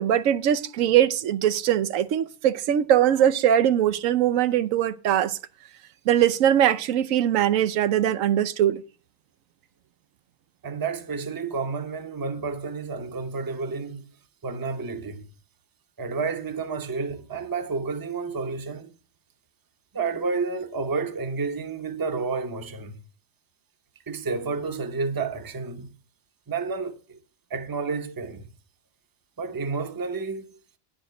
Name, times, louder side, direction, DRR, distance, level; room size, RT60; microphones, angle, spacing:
voice 1, 0.0-5.4 6.1-8.8, right 10 dB, 90° right, 1.0 m, -21 dB
voice 2, 10.6-14.0 14.4-15.3 16.0-18.9 19.9-23.0 24.1-25.9 26.5-27.2 27.5-28.4 29.4-30.6, right 4 dB, 20° right, 0.6 m, -30 dB
10.0 x 5.0 x 6.3 m
omnidirectional pair, 1.4 m